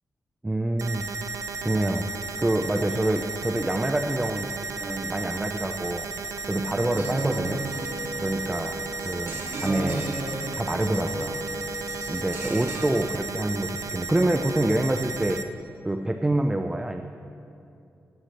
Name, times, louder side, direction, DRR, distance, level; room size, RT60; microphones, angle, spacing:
voice 1, 0.4-1.1 1.6-2.1 2.4-4.5 4.8-6.1 6.4-7.6 8.2-10.1 10.6-11.4 12.1-15.4 15.8-17.0, right 1 dB, 10° right, 6 dB, 0.4 m, -26 dB
sound 1, 0.8-15.4, right 4 dB, 80° right, 0.5 m, -34 dB
sound 2, 6.9-12.8, right 1 dB, 60° right, 2.1 m, -34 dB
13.5 x 13.0 x 3.2 m, 2.7 s
wide cardioid pair, 155°, 5 cm